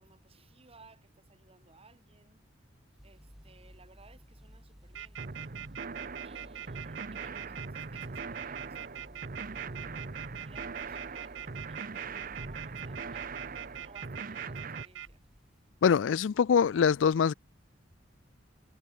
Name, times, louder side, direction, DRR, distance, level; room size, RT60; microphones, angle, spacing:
voice 1, 0.0-2.4 3.0-5.2 6.2-13.3 13.8-15.2, right 3 dB, 30° right, 3.3 m, -59 dB
sound 1, 3.0-15.6, equal, ahead, 6.0 m, -54 dB
sound 2, 4.9-15.1, right 11 dB, 70° right, 0.5 m, -43 dB
sound 3, 5.2-14.8, right 4 dB, 50° right, 0.9 m, -41 dB
voice 2, 15.8-17.3, left 7 dB, 80° left, 0.4 m, -24 dB
head